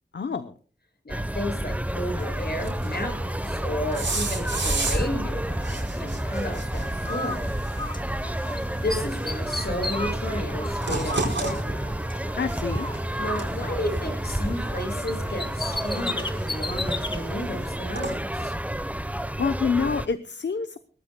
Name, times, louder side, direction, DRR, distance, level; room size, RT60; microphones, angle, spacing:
voice 1, 0.1-0.5 12.3-12.9 19.1-20.8, left 5 dB, 80° left, 10 dB, 0.8 m, -27 dB
voice 2, 1.0-7.5 8.5-11.8 13.2-18.5, left 1 dB, 60° left, 4 dB, 6.6 m, -33 dB
sound 1, 1.1-20.1, right 1 dB, 10° right, 0.9 m, -30 dB
sound 2, 2.2-18.1, right 3 dB, 80° right, 4.4 m, -36 dB
Bird, 7.0-8.6 8.9-12.3 12.7-14.8 15.1-17.2, left 2 dB, 25° left, 1.2 m, -35 dB
21.5 x 18.0 x 2.2 m, 0.40 s
wide cardioid pair, 45°, 18 cm